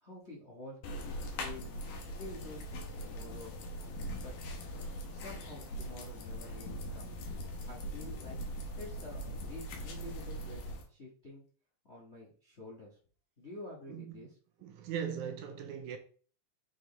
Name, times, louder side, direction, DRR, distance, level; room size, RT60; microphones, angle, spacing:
voice 1, 0.0-1.7 2.1-3.5 4.2-4.3 5.1-7.1 7.6-8.4 8.8-10.6 10.9-11.4 11.8-12.9 13.4-14.4, left 2 dB, 50° left, 0.8 m, -49 dB
sound 1, 0.8-10.8, equal, 70° left, 2.5 m, -41 dB
voice 2, 14.6-16.0, right 8 dB, 75° right, 1.9 m, -39 dB
6.2 x 4.5 x 3.4 m
omnidirectional pair, 3.8 m